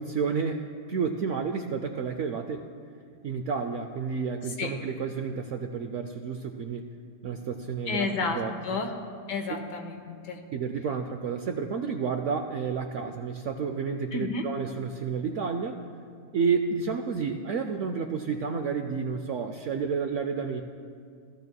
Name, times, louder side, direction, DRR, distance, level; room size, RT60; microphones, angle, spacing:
voice 1, 0.0-2.7 3.2-6.9 7.2-8.8 10.5-15.8 16.3-20.6, right 5 dB, 75° right, 6 dB, 0.7 m, -30 dB
voice 2, 7.9-8.9 9.3-10.4 14.1-14.4, left 3 dB, 90° left, 4 dB, 1.6 m, -31 dB
16.0 x 13.5 x 2.3 m, 2.2 s
omnidirectional pair, 1.8 m